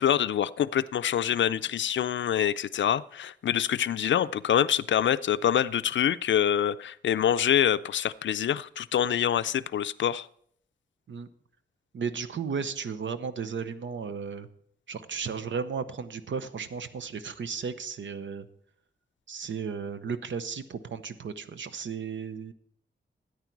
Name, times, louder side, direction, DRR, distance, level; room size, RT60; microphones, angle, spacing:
voice 1, 0.0-10.3, left 9 dB, 75° left, 15 dB, 0.4 m, -25 dB
voice 2, 11.9-14.5 14.9-18.5 19.3-22.5, right 6 dB, 80° right, 12 dB, 0.8 m, -34 dB
13.0 x 9.6 x 4.6 m, 0.66 s
wide cardioid pair, 160°, 19 cm